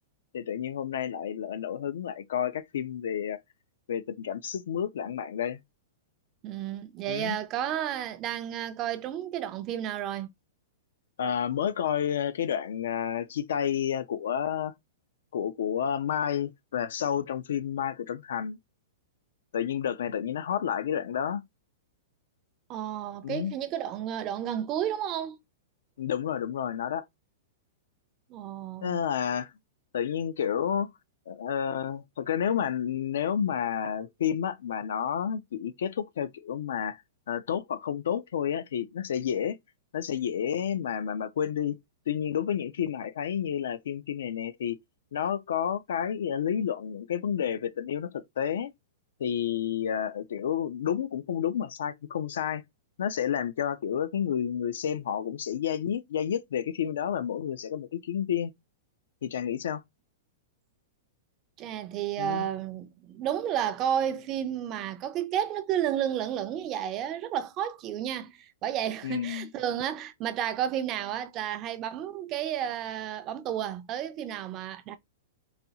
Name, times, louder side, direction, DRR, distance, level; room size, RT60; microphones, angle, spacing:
voice 1, 0.3-3.4 3.9-5.6 7.1-7.4 11.2-14.7 15.3-18.6 19.5-21.4 23.2-23.5 26.0-27.0 28.8-29.5 29.9-30.9 31.3-37.0 37.3-39.6 39.9-41.8 42.1-44.8 45.1-48.7 49.2-52.6 53.0-58.5 59.2-59.8 62.2-62.5 69.0-69.5, left 9 dB, 75° left, 0.5 m, -30 dB
voice 2, 6.4-10.3 22.7-25.4 28.3-29.0 61.6-75.0, right 10 dB, 25° right, 0.4 m, -32 dB
4.0 x 2.3 x 2.8 m
hypercardioid pair, 160°, 0 cm